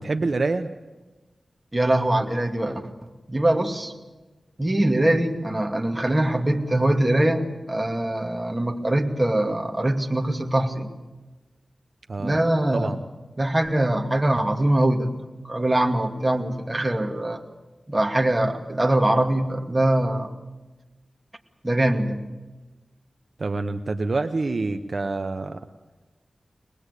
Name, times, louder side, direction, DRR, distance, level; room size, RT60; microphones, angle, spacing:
voice 1, 0.0-0.7 12.1-12.4 12.7-13.0 23.4-25.6, right 3 dB, 60° right, 7 dB, 1.0 m, -26 dB
voice 2, 1.7-3.9 4.6-10.9 12.2-12.9 13.4-17.4 17.9-20.3 21.6-22.2, right 1 dB, 25° right, 3 dB, 2.5 m, -23 dB
24.0 x 20.0 x 8.3 m, 1.2 s
wide cardioid pair, 60°, 0 cm